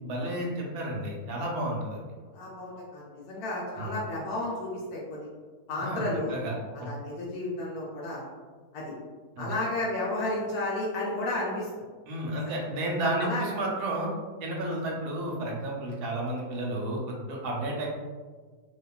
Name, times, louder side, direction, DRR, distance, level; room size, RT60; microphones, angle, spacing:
voice 1, 0.0-2.0 3.8-3.9 5.8-6.5 6.8-6.9 9.4-9.5 12.1-14.1 14.4-17.9, right 1 dB, 80° right, -1 dB, 1.1 m, -32 dB
voice 2, 2.3-5.3 5.7-6.3 6.7-8.2 8.7-8.9 9.4-11.7 12.4-12.7 13.2-13.4, left 2 dB, 75° left, -5 dB, 1.0 m, -32 dB
2.7 x 2.3 x 2.3 m, 1.5 s
omnidirectional pair, 1.7 m